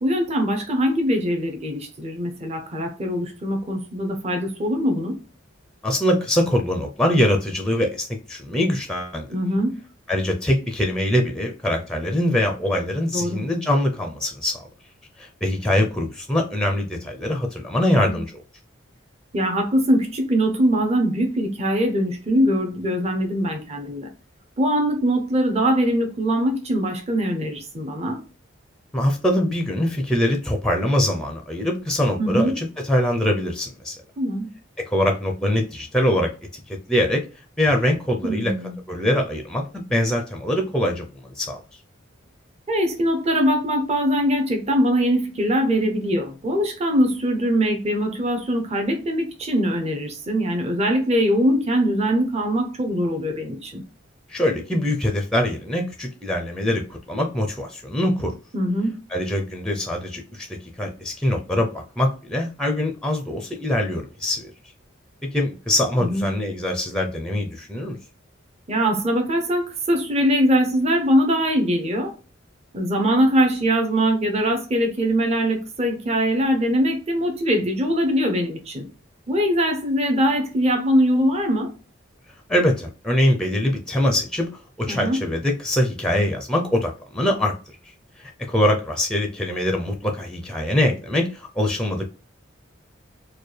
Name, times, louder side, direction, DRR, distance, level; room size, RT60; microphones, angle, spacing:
voice 1, 0.0-5.2 9.3-9.8 13.1-13.4 18.1-18.2 19.3-24.1 24.6-28.2 32.2-32.5 34.2-34.5 38.2-38.8 42.7-53.8 58.5-59.0 66.0-66.2 68.7-72.1 72.7-78.9 79.3-81.7 84.9-85.2, equal, 30° right, 0.8 m, -22 dB
voice 2, 5.8-9.3 10.1-14.5 15.2-18.3 28.9-33.9 34.9-36.3 36.9-37.2 37.6-38.5 38.9-41.1 41.4-41.6 54.3-58.3 59.1-60.5 60.8-64.5 65.3-68.0 82.5-84.5 84.8-87.5 88.5-92.1, left 1 dB, 5° left, 0.5 m, -23 dB
4.3 x 2.2 x 3.2 m
head